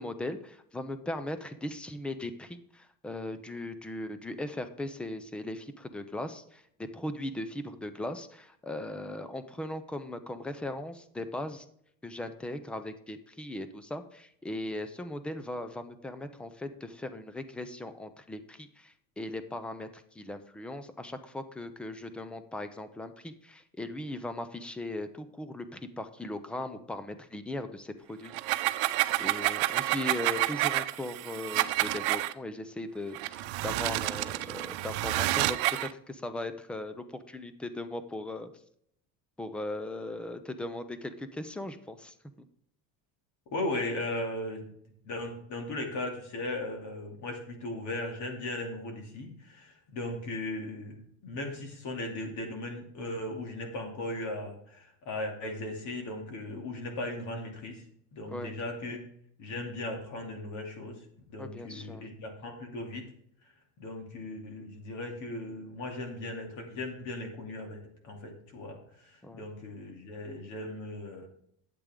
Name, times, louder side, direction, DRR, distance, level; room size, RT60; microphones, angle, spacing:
voice 1, 0.0-11.7 12.0-28.6 29.2-38.5 39.4-42.2 58.3-58.5 58.8-59.0 61.4-62.0 69.2-69.4, left 1 dB, 5° left, 10 dB, 0.3 m, -38 dB
sound 1, 28.3-32.3 33.1-35.9, right 17 dB, 85° right, 0.7 m, -29 dB
voice 2, 43.5-44.7 45.0-57.8 58.1-59.0 59.4-63.1 63.8-71.3, left 1 dB, 45° left, 2 dB, 2.7 m, -37 dB
12.0 x 8.3 x 3.7 m, 0.69 s
cardioid pair, 175°, 38 cm